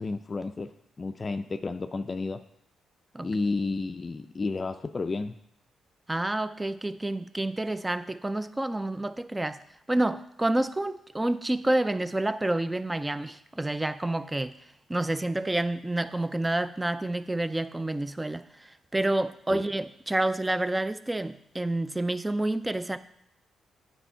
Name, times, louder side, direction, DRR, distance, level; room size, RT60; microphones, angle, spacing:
voice 1, 0.0-2.4 3.2-5.3 19.5-19.6, left 3 dB, 40° left, 8 dB, 0.4 m, -32 dB
voice 2, 6.1-9.6 9.9-14.6 14.9-23.0, right 1 dB, 15° right, 13 dB, 0.4 m, -29 dB
9.1 x 4.4 x 4.4 m, 0.74 s
hypercardioid pair, 50°, 0 cm